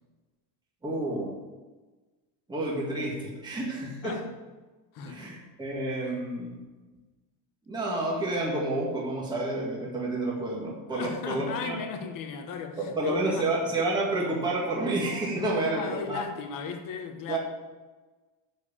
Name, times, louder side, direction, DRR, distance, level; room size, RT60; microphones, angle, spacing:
voice 1, 0.8-1.4 2.5-4.2 5.1-6.6 7.7-11.8 12.8-16.2 17.3-17.4, right 2 dB, 10° right, 1.8 m, -30 dB
voice 2, 4.9-5.3 10.9-13.5 15.3-17.4, left 6 dB, 40° left, 1.2 m, -36 dB
9.8 x 4.7 x 7.2 m
cardioid pair, 165°, 48 cm